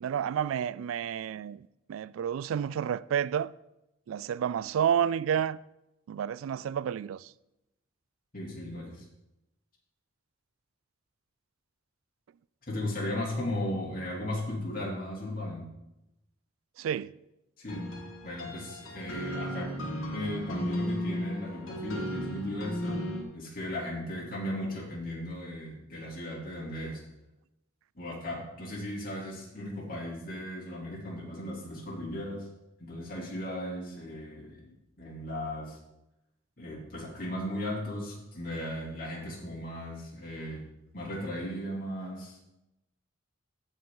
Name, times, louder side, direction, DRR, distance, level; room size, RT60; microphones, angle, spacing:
voice 1, 0.0-3.5 4.1-5.6 6.1-7.3 16.8-17.1, right 8 dB, 85° right, 0.3 m, -30 dB
voice 2, 8.3-9.0 12.7-15.6 17.6-17.9 18.2-19.7 20.1-23.0 23.3-27.0 27.9-32.5 32.8-35.8 36.6-40.6 40.9-42.4, left 1 dB, 45° left, 3.1 m, -36 dB
sound 1, 17.7-23.2, equal, 80° left, 2.0 m, -35 dB
15.0 x 5.2 x 3.9 m
head